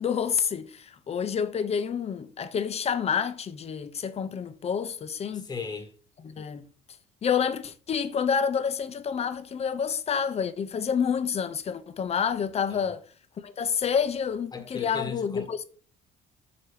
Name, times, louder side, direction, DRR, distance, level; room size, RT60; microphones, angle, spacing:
voice 1, 0.0-5.5 6.2-6.7 7.2-13.0 13.4-15.6, left 7 dB, 40° left, 0.8 m, -28 dB
voice 2, 5.3-5.9 12.7-12.8 14.5-15.6, left 5 dB, 25° left, 1.3 m, -37 dB
7.8 x 3.0 x 5.0 m
cardioid pair, 110°, 17 cm